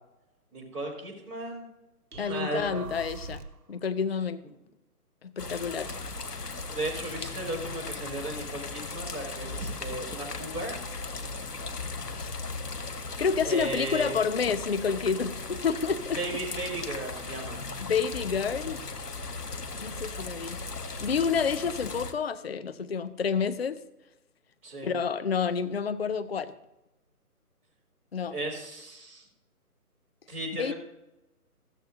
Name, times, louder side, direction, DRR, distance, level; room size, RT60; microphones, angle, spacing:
voice 1, 0.5-1.6 2.1-2.8 6.7-10.8 13.4-14.1 16.2-17.7 24.6-24.9 28.3-29.3 30.3-30.7, right 2 dB, 15° right, -6 dB, 3.5 m, -35 dB
sound 1, 2.1-3.7, right 3 dB, 80° right, 1.2 m, -43 dB
voice 2, 2.2-3.4 3.7-4.4 5.2-5.9 12.2-12.3 13.2-16.2 17.8-18.8 19.8-20.6 21.0-23.8 24.8-26.5 28.1-28.4 30.6-30.7, left 6 dB, 45° left, 12 dB, 0.6 m, -29 dB
sound 2, 5.4-22.1, left 3 dB, 85° left, 1.3 m, -37 dB
15.0 x 13.0 x 2.7 m, 0.96 s
figure-of-eight pair, 150°, 46 cm